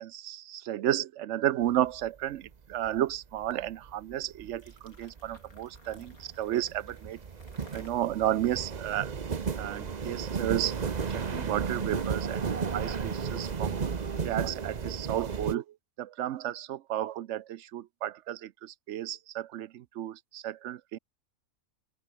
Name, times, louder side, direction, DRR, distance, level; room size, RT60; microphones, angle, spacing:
voice 1, 0.0-7.2 7.7-9.1 9.6-12.4 12.7-13.8 14.2-15.6 16.0-21.0, right 12 dB, 65° right, 0.8 m, -32 dB
sound 1, 1.6-2.1 2.5-15.6, right 6 dB, 35° right, 0.8 m, -34 dB
sound 2, 4.4-9.7, left 4 dB, 70° left, 3.7 m, -59 dB
open air
omnidirectional pair, 1.6 m